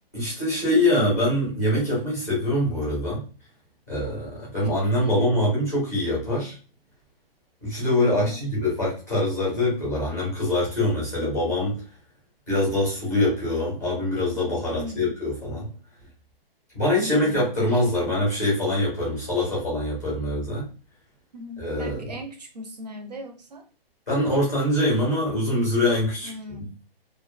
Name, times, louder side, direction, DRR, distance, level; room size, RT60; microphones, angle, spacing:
voice 1, 0.1-3.2 3.9-6.5 7.6-11.8 12.5-15.7 16.7-20.7 21.6-22.1 24.1-26.3, left 1 dB, 15° left, -6 dB, 0.6 m, -24 dB
voice 2, 5.0-5.4 8.1-8.4 14.7-15.1 17.0-17.4 21.3-23.6 26.2-26.8, equal, 45° right, 5 dB, 0.4 m, -38 dB
2.4 x 2.3 x 2.2 m, 0.36 s
hypercardioid pair, 175°, 30 cm